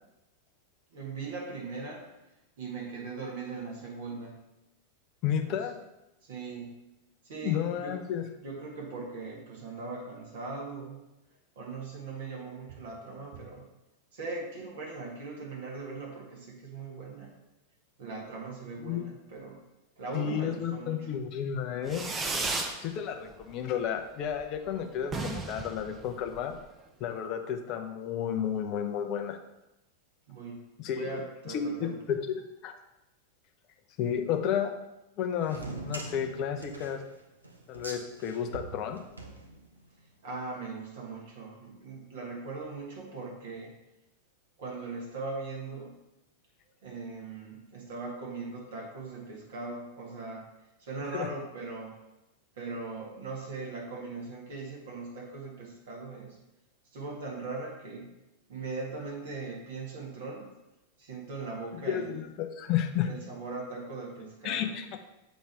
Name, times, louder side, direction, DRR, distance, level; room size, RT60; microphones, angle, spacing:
voice 1, 0.9-2.0 2.6-4.4 5.4-5.7 6.2-6.8 7.2-8.0 8.4-11.0 11.6-13.6 14.1-17.3 18.0-19.6 20.0-21.2 30.3-30.6 30.9-32.3 40.2-43.7 44.6-46.0 46.8-50.5 50.8-52.0 52.5-56.4 56.9-58.1 58.5-60.5 61.0-62.2 63.0-64.7, right 3 dB, 55° right, -2 dB, 1.8 m, -40 dB
voice 2, 5.2-5.7 7.4-8.2 18.8-19.1 20.1-22.1 22.8-26.5 27.0-29.4 30.8-31.1 31.5-32.7 34.0-34.7 35.2-37.0 37.7-39.0 51.1-51.3 61.8-63.1 64.4-65.0, left 8 dB, 40° left, 4 dB, 0.6 m, -32 dB
Fireworks, 21.9-22.8 23.1-23.7 24.0-24.1 24.3-24.4 24.7-24.8 25.0-26.7, right 3 dB, 20° right, 0.6 m, -34 dB
sound 1, 35.4-40.0, right 2 dB, 80° right, 0.7 m, -43 dB
7.3 x 3.1 x 4.7 m, 0.94 s
figure-of-eight pair, 90°, 0 cm